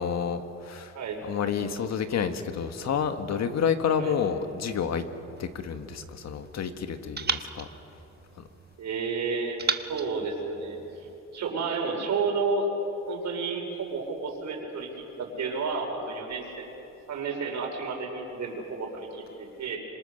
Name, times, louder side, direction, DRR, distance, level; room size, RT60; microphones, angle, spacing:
voice 1, 0.0-0.9 1.2-5.0 5.4-7.7, left 7 dB, 60° left, 8 dB, 1.8 m, -29 dB
sound 1, 5.4-6.6 7.2-8.8 9.6-11.2, right 5 dB, 35° right, 1.2 m, -36 dB
voice 2, 8.8-10.8 11.3-12.7 13.1-16.7 17.1-19.8, right 4 dB, 70° right, 2 dB, 5.3 m, -31 dB
26.0 x 26.0 x 6.7 m, 2.9 s
cardioid pair, 90°, 30 cm